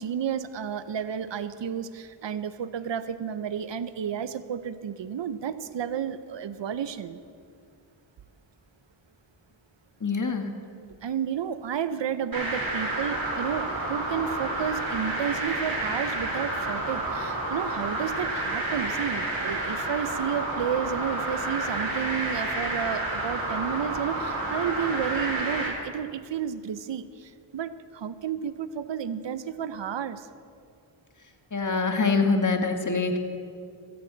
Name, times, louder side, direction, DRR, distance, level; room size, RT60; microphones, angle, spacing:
voice 1, 0.0-7.2 11.0-30.3, right 8 dB, 60° right, 13 dB, 0.8 m, -31 dB
voice 2, 10.0-10.5 31.5-33.2, left 4 dB, 35° left, 5 dB, 1.8 m, -24 dB
sound 1, 12.3-25.7, right 2 dB, 45° right, 4.0 m, -30 dB
16.5 x 14.0 x 4.0 m, 2.3 s
cardioid pair, 45°, 50 cm